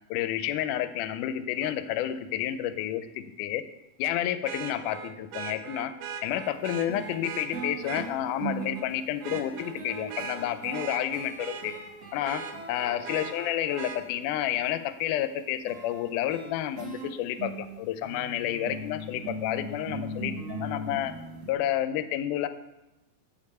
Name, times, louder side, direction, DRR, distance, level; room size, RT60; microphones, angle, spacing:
voice 1, 0.1-3.6 4.0-5.9 6.2-11.7 12.1-12.4 12.7-21.1 21.5-22.5, left 11 dB, 85° left, 11 dB, 2.1 m, -30 dB
Vehicle horn car horn honking, 1.6-1.7 4.4-8.1 8.6-8.9 9.2-11.8 12.2-14.0 15.8-15.9, right 7 dB, 85° right, 2.3 m, -39 dB
sound 1, 6.5-6.6 6.9-14.1 15.7-21.5, right 2 dB, 55° right, 1.1 m, -39 dB
7.3 x 6.9 x 5.3 m, 0.96 s
omnidirectional pair, 3.6 m